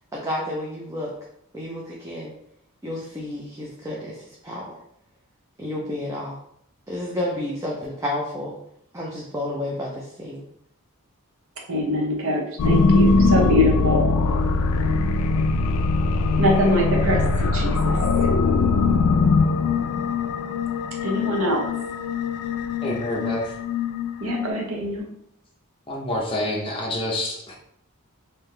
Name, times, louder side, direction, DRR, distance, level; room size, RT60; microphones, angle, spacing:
voice 1, 0.1-1.1 1.5-2.3 2.8-4.6 5.6-6.4 6.9-8.5 8.9-10.4, left 1 dB, 15° right, -4 dB, 0.5 m, -30 dB
voice 2, 11.7-14.1 16.4-18.3 21.0-21.7 24.2-25.1, equal, 65° right, 1 dB, 0.8 m, -24 dB
sound 1, 12.6-24.5, left 4 dB, 80° left, 0.3 m, -21 dB
voice 3, 22.8-23.5 25.9-27.5, left 1 dB, 25° left, -2 dB, 0.8 m, -27 dB
3.8 x 2.7 x 3.2 m, 0.73 s
head